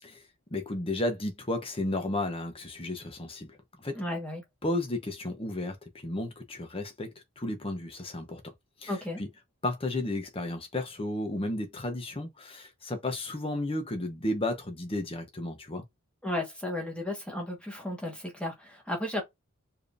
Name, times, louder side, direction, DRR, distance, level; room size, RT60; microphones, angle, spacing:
voice 1, 0.5-3.5 3.8-4.0 4.6-5.8 6.0-8.4 8.8-8.9 9.2-9.3 9.6-15.8, left 1 dB, 25° left, 0.9 m, -33 dB
voice 2, 3.9-4.4 8.9-9.2 16.2-19.2, left 1 dB, 5° left, 1.4 m, -34 dB
4.6 x 3.4 x 2.6 m
head